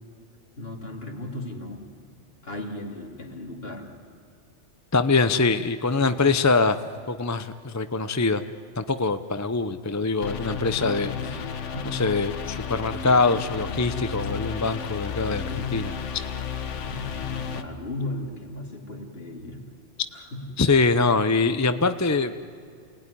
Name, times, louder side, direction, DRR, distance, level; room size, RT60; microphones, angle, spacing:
voice 1, 0.6-1.9 2.4-3.9 10.8-11.5 11.7-11.9 15.5-15.9 16.8-19.6 20.1-20.5, left 1 dB, 55° left, 1 dB, 3.3 m, -36 dB
voice 2, 4.9-6.8 7.1-8.5 8.8-11.1 11.9-15.4 15.7-15.9 20.6-22.3, left 3 dB, 20° left, 10 dB, 0.5 m, -23 dB
sound 1, 10.2-17.6, left 7 dB, 85° left, 1.4 m, -32 dB
28.5 x 19.0 x 10.0 m, 2.3 s
omnidirectional pair, 1.2 m